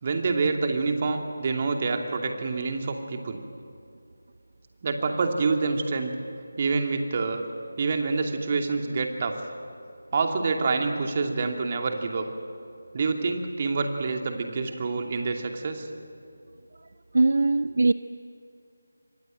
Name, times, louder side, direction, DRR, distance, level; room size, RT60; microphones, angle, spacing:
voice 1, 0.0-3.4 4.8-6.1 6.6-7.4 7.8-9.4 10.1-12.3 12.9-15.9, right 4 dB, 30° right, 4 dB, 2.7 m, -27 dB
voice 2, 17.1-17.9, right 3 dB, 55° right, 15 dB, 0.6 m, -20 dB
28.5 x 26.0 x 7.7 m, 2.5 s
figure-of-eight pair, 160°, 0 cm